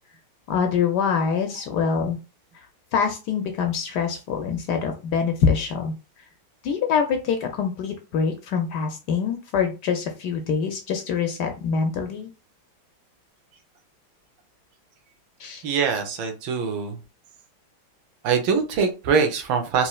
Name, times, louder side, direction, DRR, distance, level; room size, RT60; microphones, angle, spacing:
voice 1, 0.5-2.2 2.5-2.6 2.9-5.9 6.6-12.3 15.4-15.6, left 6 dB, 70° left, 5 dB, 1.0 m, -25 dB
voice 2, 15.6-17.0 18.2-19.9, right 6 dB, 80° right, 5 dB, 1.5 m, -23 dB
4.3 x 3.0 x 2.3 m, 0.30 s
omnidirectional pair, 2.2 m